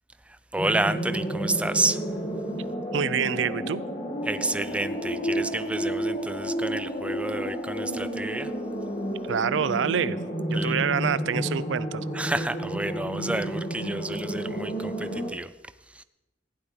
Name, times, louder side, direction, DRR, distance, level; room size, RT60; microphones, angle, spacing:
voice 1, 0.5-2.0 4.2-8.5 10.5-10.8 12.1-15.5 15.9-16.0, right 2 dB, 5° right, 12 dB, 0.4 m, -30 dB
sound 1, 0.6-15.3, right 1 dB, 35° left, 1.9 m, -31 dB
voice 2, 2.9-3.8 9.3-10.2 10.5-12.0, right 7 dB, 75° right, 18 dB, 0.5 m, -26 dB
15.5 x 5.8 x 9.7 m, 0.99 s
head